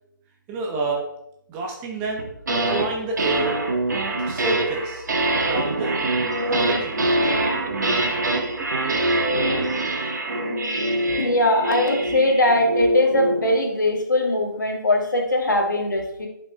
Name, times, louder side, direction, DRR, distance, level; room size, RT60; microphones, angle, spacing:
voice 1, 0.5-1.1 1.5-2.3 2.6-3.6 4.2-5.0 5.4-6.0 6.5-7.0 7.6-8.3 9.3-9.4, right 3 dB, 15° right, 0 dB, 0.9 m, -29 dB
sound 1, 2.2-2.9 3.2-13.6, right 1 dB, 60° right, 1.5 m, -24 dB
voice 2, 11.1-16.3, left 1 dB, 65° left, 2 dB, 1.7 m, -20 dB
10.5 x 5.3 x 2.8 m, 0.77 s
figure-of-eight pair, 145°, 11 cm